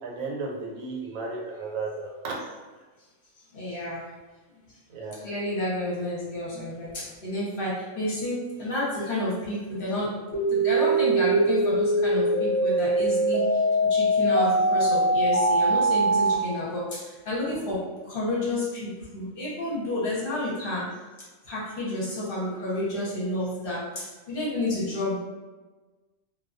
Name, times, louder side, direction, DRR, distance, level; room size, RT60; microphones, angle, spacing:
voice 1, 0.0-2.4 4.9-5.2, right 3 dB, 80° right, -2 dB, 1.0 m, -34 dB
voice 2, 3.5-4.1 4.7-4.8 5.2-20.9 21.4-25.2, left 1 dB, 50° left, -7 dB, 0.8 m, -30 dB
sound 1, 10.3-16.3, right 1 dB, 15° left, 0.4 m, -22 dB
2.2 x 2.2 x 2.4 m, 1.3 s
omnidirectional pair, 1.4 m